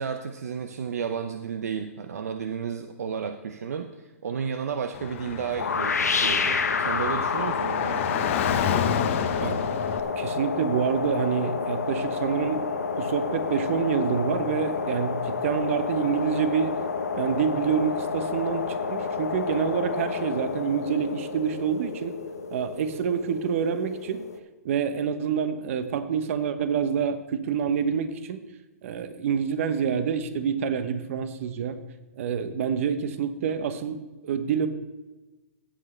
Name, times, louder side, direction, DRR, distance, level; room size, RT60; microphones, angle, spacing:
voice 1, 0.0-8.3, right 7 dB, 75° right, 7 dB, 0.7 m, -32 dB
Car / Traffic noise roadway noise, 4.9-10.0, left 9 dB, 55° left, 1.0 m, -29 dB
sound 1, 5.6-24.4, left 5 dB, 90° left, 1.0 m, -29 dB
voice 2, 10.2-16.7 17.2-22.2 22.5-24.2 24.6-28.4 28.8-31.8 32.2-34.7, right 7 dB, 60° right, 10 dB, 1.1 m, -27 dB
16.0 x 7.6 x 3.3 m, 1.1 s
hypercardioid pair, 125°, 8 cm